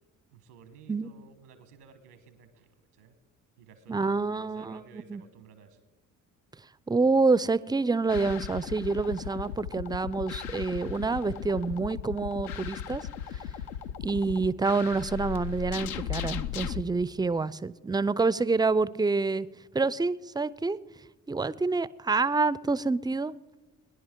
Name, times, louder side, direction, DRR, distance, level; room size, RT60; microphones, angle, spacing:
voice 1, 0.3-3.2 3.6-5.8 13.7-14.0 17.3-17.4, right 6 dB, 90° right, 1.3 m, -54 dB
voice 2, 3.9-5.2 6.9-13.1 13.3-13.4 14.0-19.5 19.7-20.8 21.3-23.3, right 3 dB, 10° right, 0.4 m, -27 dB
sound 1, 8.1-16.8, left 9 dB, 75° left, 0.7 m, -37 dB
21.5 x 10.5 x 3.7 m
hypercardioid pair, 45°, 44 cm